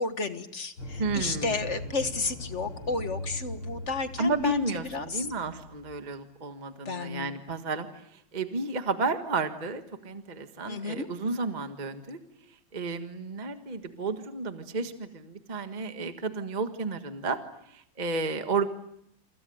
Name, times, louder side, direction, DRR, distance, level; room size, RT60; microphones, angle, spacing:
voice 1, 0.0-4.6 4.9-5.3 6.8-7.3 10.6-11.1, left 3 dB, 35° left, 9 dB, 1.6 m, -32 dB
sound 1, 0.8-5.9, left 1 dB, 80° left, 5.8 m, -40 dB
voice 2, 1.0-1.7 4.2-12.2 12.7-17.4 17.7-18.7, right 3 dB, 25° right, 7 dB, 1.5 m, -32 dB
28.0 x 25.5 x 8.0 m, 0.75 s
omnidirectional pair, 2.3 m